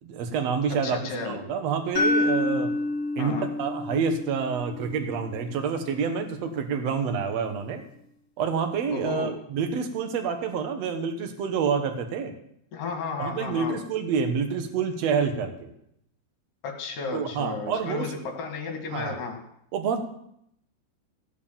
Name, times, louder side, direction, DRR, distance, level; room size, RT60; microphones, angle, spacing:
voice 1, 0.0-2.7 3.2-7.8 8.4-12.3 13.2-15.7 17.1-18.2 18.9-19.2 19.7-20.0, right 6 dB, 75° right, 6 dB, 1.5 m, -28 dB
voice 2, 0.8-1.4 3.2-3.5 8.9-9.3 12.7-13.8 16.6-19.4, left 4 dB, 60° left, 3 dB, 2.9 m, -33 dB
sound 1, 2.0-6.0, left 2 dB, 40° left, 3.3 m, -28 dB
16.0 x 7.5 x 7.3 m, 0.74 s
omnidirectional pair, 4.9 m